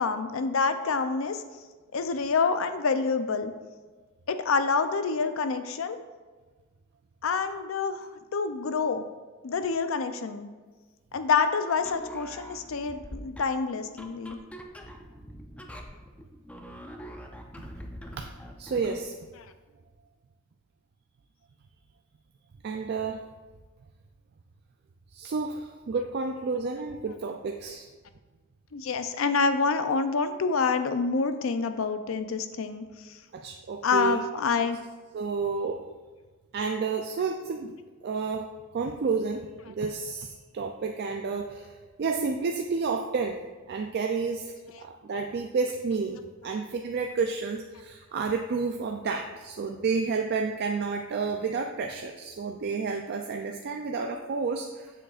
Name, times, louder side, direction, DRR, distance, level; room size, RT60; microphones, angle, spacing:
voice 1, 0.0-1.4 1.9-3.5 4.3-6.0 7.2-8.0 8.3-9.0 9.4-10.5 11.1-14.4 28.7-32.8 33.8-34.8, left 4 dB, 85° left, 9 dB, 0.5 m, -27 dB
sound 1, 11.8-19.1, equal, 5° left, 0.5 m, -44 dB
voice 2, 18.6-19.1 22.6-23.2 25.1-27.9 33.3-34.2 35.1-35.8 36.5-37.7 38.0-38.5 38.7-41.7 42.0-43.4 43.7-44.5 44.8-54.9, right 4 dB, 55° right, 3 dB, 0.4 m, -30 dB
7.5 x 6.4 x 2.4 m, 1.3 s
head